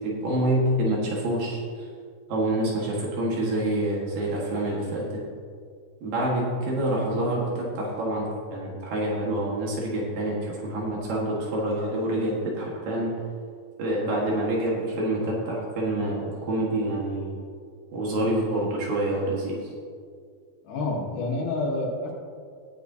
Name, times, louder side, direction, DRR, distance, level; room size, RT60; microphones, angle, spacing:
voice 1, 0.0-1.9 2.3-5.2 6.0-13.1 13.8-17.4 17.9-19.7, right 1 dB, 65° right, -4 dB, 3.2 m, -27 dB
voice 2, 20.6-22.1, left 2 dB, 75° left, -2 dB, 3.6 m, -28 dB
18.0 x 8.4 x 2.8 m, 2.2 s
omnidirectional pair, 4.4 m